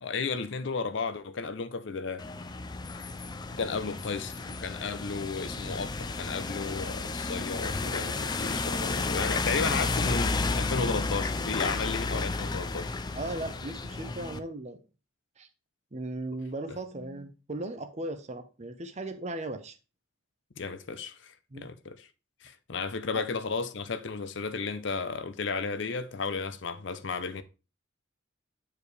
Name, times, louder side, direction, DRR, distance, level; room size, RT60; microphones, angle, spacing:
voice 1, 0.0-2.3 3.5-12.9 16.7-16.8 20.6-22.1 22.4-27.4, left 4 dB, 60° left, 0.6 m, -34 dB
sound 1, 2.2-14.4, left 3 dB, 20° left, 0.4 m, -32 dB
voice 2, 13.1-14.8 15.4-15.5 15.9-19.7 21.5-21.7 23.1-23.2, right 2 dB, 35° right, 0.7 m, -37 dB
8.6 x 4.8 x 3.3 m
head